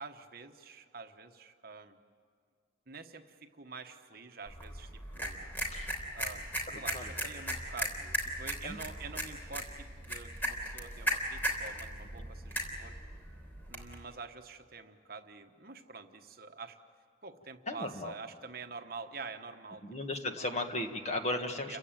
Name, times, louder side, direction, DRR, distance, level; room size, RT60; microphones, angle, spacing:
voice 1, 0.0-2.0 2.9-5.5 6.1-6.5 6.7-13.0 13.7-16.8 17.2-19.8 20.2-20.4 21.7-21.8, right 4 dB, 50° right, 6 dB, 1.2 m, -47 dB
sound 1, 4.5-14.0, equal, 10° left, 3.5 m, -37 dB
voice 2, 6.7-7.0 8.6-8.8 12.2-12.3 17.7-18.1 19.8-21.8, left 2 dB, 35° left, 5 dB, 1.7 m, -36 dB
29.5 x 16.0 x 9.2 m, 2.1 s
head